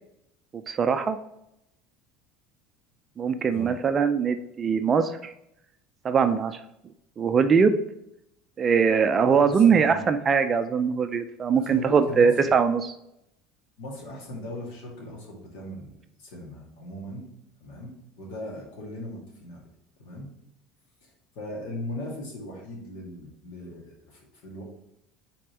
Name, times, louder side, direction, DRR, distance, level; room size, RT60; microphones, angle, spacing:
voice 1, 0.7-1.2 3.2-5.3 6.0-6.6 7.2-7.8 8.6-12.9, right 6 dB, 25° right, 9 dB, 0.4 m, -22 dB
voice 2, 9.2-10.0 11.5-12.4 13.8-15.9 16.2-17.3 17.6-17.9 18.2-19.7 20.0-20.3 21.0-24.6, left 1 dB, 70° left, -1 dB, 2.2 m, -38 dB
5.1 x 4.2 x 4.5 m, 0.81 s
cardioid pair, 160°, 0 cm